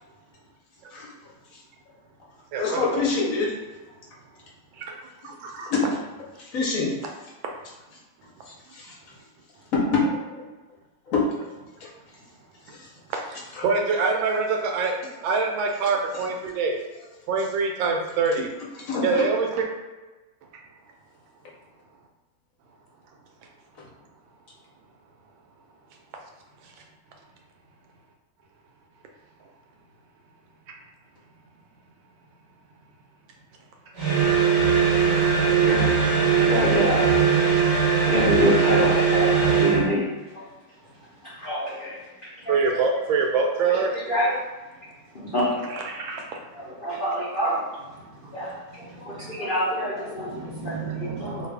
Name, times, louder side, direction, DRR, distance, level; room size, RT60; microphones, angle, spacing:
voice 1, 2.6-3.5 5.7-5.8 6.4-6.9 8.5-8.9 9.8-10.4 11.1-11.5 12.7-12.9 13.5-13.6 18.9-19.2, left 3 dB, 60° left, -4 dB, 0.9 m, -26 dB
voice 2, 5.2-5.7 13.1-14.9 15.2-16.8 17.3-18.5 19.0-19.6 37.0-37.1 42.5-43.9 45.7-46.4 48.0-49.4 50.2-51.5, right 4 dB, 85° right, 2 dB, 1.3 m, -26 dB
sound 1, 34.0-39.9, right 6 dB, 45° right, 0.9 m, -20 dB
voice 3, 35.6-36.0 36.3-37.3 38.1-40.0 40.3-40.4 41.4-41.9 42.4-42.6 44.1-44.3 45.3-45.6 46.6-47.7 48.3-48.5 49.1-50.3 50.6-51.5, left 1 dB, 85° left, -9 dB, 0.4 m, -26 dB
3.2 x 2.4 x 3.3 m, 1.2 s
omnidirectional pair, 2.1 m